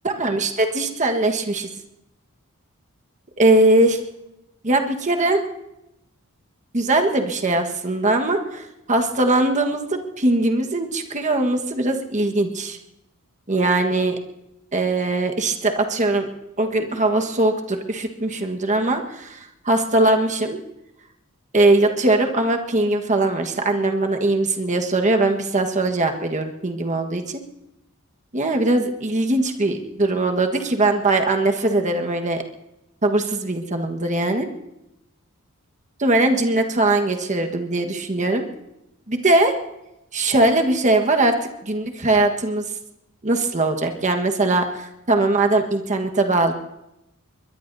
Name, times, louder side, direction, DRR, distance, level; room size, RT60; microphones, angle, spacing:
voice 1, 0.0-1.7 3.4-4.0 4.6-5.4 6.7-12.8 13.5-14.1 14.7-16.3 16.6-20.6 21.5-27.4 28.3-32.4 33.0-34.5 36.0-38.4 39.1-39.6 40.1-42.7 43.2-46.5, right 2 dB, 35° right, 4 dB, 1.4 m, -20 dB
23.0 x 22.0 x 2.7 m, 0.89 s
head